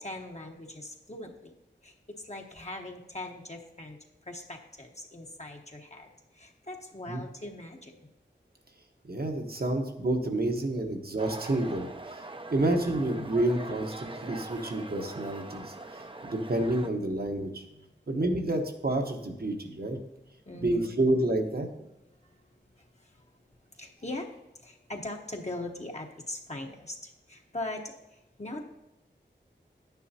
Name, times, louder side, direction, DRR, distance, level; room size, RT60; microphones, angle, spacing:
voice 1, 0.0-1.5 1.8-4.0 4.3-6.1 6.3-8.1 20.5-20.9 23.8-24.3 24.6-27.9 28.4-28.6, left 2 dB, 35° left, 1 dB, 1.0 m, -40 dB
voice 2, 9.0-12.2 12.5-17.6 18.1-20.0 20.6-21.7, right 1 dB, 55° right, 4 dB, 1.1 m, -29 dB
sound 1, 11.2-16.9, right 2 dB, 25° right, 0.6 m, -43 dB
9.9 x 9.3 x 2.8 m, 0.93 s
wide cardioid pair, 50°, 19 cm